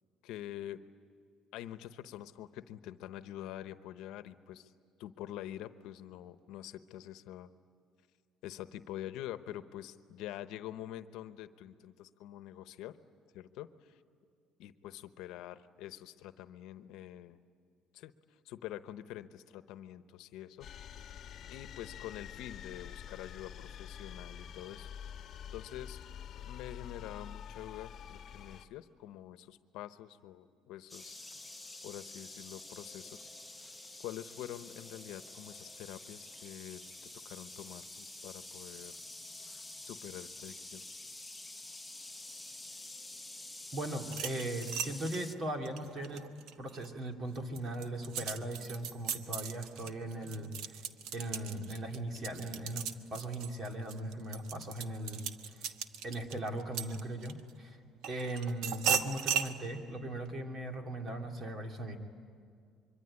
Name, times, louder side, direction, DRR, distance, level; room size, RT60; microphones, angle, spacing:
voice 1, 0.2-0.8 1.5-4.7 5.0-7.5 8.4-13.0 13.3-14.0 14.6-17.4 17.9-18.1 18.4-20.7 21.5-24.9 25.5-26.0 26.4-31.2 31.8-33.3 34.0-36.8 37.2-39.0 39.8-40.9, left 12 dB, 80° left, 11 dB, 1.0 m, -46 dB
sound 1, 20.6-28.7, left 9 dB, 45° left, 1.3 m, -47 dB
sound 2, 30.9-45.4, left 2 dB, 5° left, 0.9 m, -48 dB
voice 2, 43.7-46.3 46.6-50.8 51.1-55.7 56.0-57.8 58.1-62.0, right 1 dB, 35° right, 3 dB, 2.9 m, -39 dB
sound 3, 44.0-46.9 47.3-57.5 58.0-59.5, right 8 dB, 80° right, 1.2 m, -37 dB
25.5 x 24.0 x 10.0 m, 2.2 s
cardioid pair, 135°, 0 cm